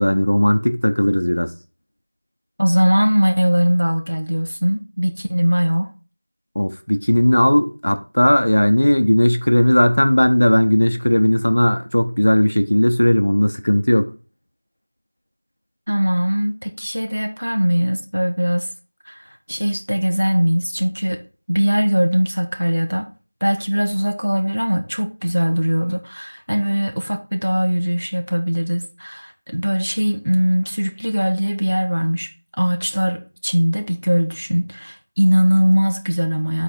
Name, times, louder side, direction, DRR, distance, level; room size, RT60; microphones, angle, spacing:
voice 1, 0.0-1.5 6.5-14.1, equal, 50° left, 0.7 m, -16 dB
voice 2, 2.6-5.9 15.9-18.7 19.1-19.2 19.5-23.1 23.4-32.3 32.6-36.6, equal, 85° right, 1.7 m, -20 dB
8.2 x 4.1 x 4.3 m
figure-of-eight pair, 180°, 0 cm